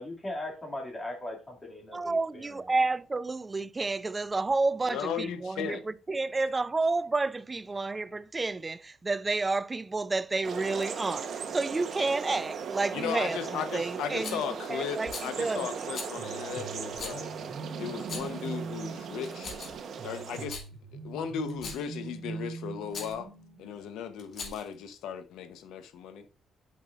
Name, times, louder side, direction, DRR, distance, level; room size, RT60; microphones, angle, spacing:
voice 1, 0.0-2.6, left 1 dB, 25° left, 2.4 m, -39 dB
voice 2, 1.9-14.4 14.7-15.7, right 3 dB, 25° right, 0.4 m, -30 dB
voice 3, 4.9-5.8 12.9-17.3 17.8-19.5 20.0-20.6 20.9-23.3 23.6-26.3, left 8 dB, 85° left, 0.8 m, -36 dB
sound 1, 10.4-20.5, right 6 dB, 65° right, 1.0 m, -38 dB
Rattle, 14.2-14.5 15.0-15.3 15.9-16.1 16.9-17.2 18.0-18.4 19.2-19.9 20.3-20.7 21.5-21.9 22.9-23.1 24.2-24.7, left 4 dB, 60° left, 2.2 m, -40 dB
sound 2, 16.1-23.8, right 4 dB, 90° right, 1.5 m, -42 dB
9.4 x 5.5 x 2.5 m
cardioid pair, 90°, 0 cm